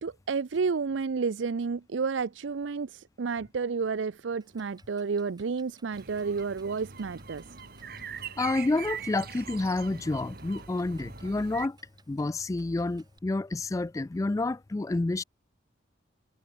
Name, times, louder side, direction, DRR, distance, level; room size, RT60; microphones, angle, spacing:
voice 1, 0.0-7.4, right 5 dB, 80° right, 0.5 m, -31 dB
Clock, 4.4-13.2, right 4 dB, 20° right, 6.9 m, -63 dB
sound 1, 5.9-11.7, right 6 dB, 55° right, 2.3 m, -42 dB
voice 2, 8.4-11.8 12.1-15.2, left 2 dB, 15° left, 0.3 m, -29 dB
head